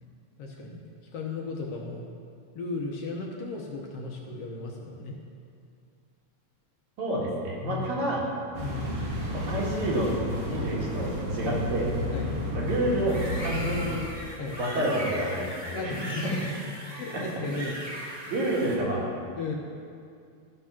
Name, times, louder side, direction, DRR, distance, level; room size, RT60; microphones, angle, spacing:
voice 1, 0.4-0.8 1.1-2.1 2.5-5.2 7.6-8.1 8.6-8.9 11.4-11.6 12.1-12.3 14.4-14.6 15.7-16.4 16.8-17.8 19.4-19.5, left 3 dB, 65° left, 0 dB, 1.8 m, -35 dB
voice 2, 7.0-8.3 9.3-10.1 10.5-11.9 12.5-14.1 14.6-16.3 17.1-17.2 18.3-19.0, right 1 dB, 75° right, -4 dB, 3.3 m, -29 dB
sound 1, 8.5-14.0, left 1 dB, 55° right, 2.1 m, -31 dB
sound 2, 13.1-18.8, equal, 10° right, 1.9 m, -38 dB
13.5 x 6.1 x 5.9 m, 2.3 s
omnidirectional pair, 3.4 m